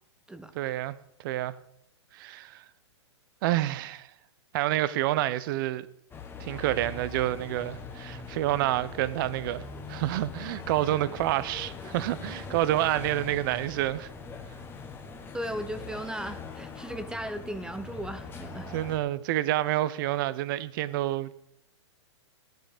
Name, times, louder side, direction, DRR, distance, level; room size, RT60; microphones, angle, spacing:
voice 1, 0.5-1.0 1.2-1.5 2.1-2.6 3.4-4.1 4.5-5.9 6.4-14.1 18.7-21.3, right 14 dB, 45° right, 0.8 m, -28 dB
sound 1, 6.1-19.0, left 4 dB, 15° left, 1.5 m, -42 dB
voice 2, 15.3-18.7, right 1 dB, 5° right, 0.7 m, -36 dB
15.0 x 10.5 x 5.2 m
hypercardioid pair, 125°, 15 cm